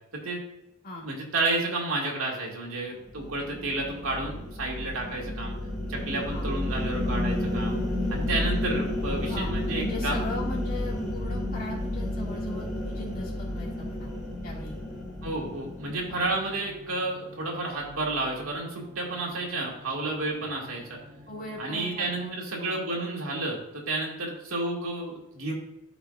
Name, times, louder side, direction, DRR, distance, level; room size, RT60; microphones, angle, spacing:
voice 1, 1.0-5.6 5.9-7.8 8.1-10.2 15.2-21.0 21.6-25.5, right 2 dB, 80° right, -2 dB, 2.1 m, -31 dB
sound 1, 3.0-16.6, left 1 dB, ahead, 2.1 m, -31 dB
sound 2, 6.3-22.3, left 1 dB, 45° right, 1.3 m, -50 dB
voice 2, 9.8-14.1 14.4-14.8 16.1-16.3 21.3-22.8, left 1 dB, 45° left, -3 dB, 2.2 m, -39 dB
13.0 x 5.0 x 2.5 m, 0.88 s
head